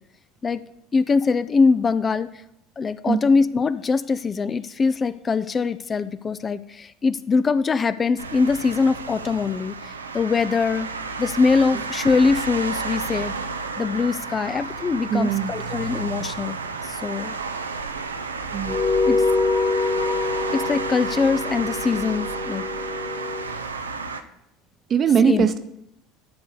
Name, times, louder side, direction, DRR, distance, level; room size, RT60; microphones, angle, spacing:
voice 1, 0.9-2.3 2.8-9.7 10.1-10.9 11.2-13.4 13.8-16.6 16.9-17.4 19.0-19.2 20.5-22.6 25.3-25.5, left 4 dB, 30° left, 14 dB, 0.4 m, -22 dB
sound 1, 8.2-24.2, right 4 dB, 90° right, 0.6 m, -32 dB
voice 2, 15.1-15.5 18.5-18.8 24.9-25.6, right 7 dB, 40° right, 11 dB, 0.8 m, -20 dB
sound 2, 18.7-23.5, left 3 dB, 50° left, 2.7 m, -25 dB
11.0 x 4.0 x 6.8 m, 0.80 s
hypercardioid pair, 70°, 0 cm